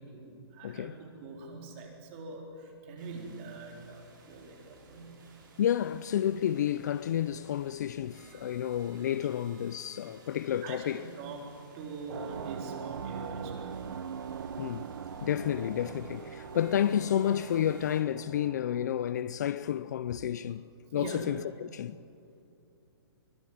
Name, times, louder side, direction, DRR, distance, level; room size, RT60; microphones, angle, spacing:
voice 1, 0.0-5.2 8.2-8.6 10.6-14.2 20.9-21.2, right 3 dB, 25° right, 4.2 m, -44 dB
voice 2, 0.6-1.0 5.6-11.0 14.6-14.8 15.2-20.6 20.9-22.0, left 10 dB, 40° left, 0.5 m, -30 dB
sound 1, 3.0-18.0, right 3 dB, 50° right, 6.2 m, -57 dB
sound 2, 12.1-18.9, right 7 dB, 70° right, 0.9 m, -41 dB
25.0 x 19.0 x 9.4 m
hypercardioid pair, 165°, 13 cm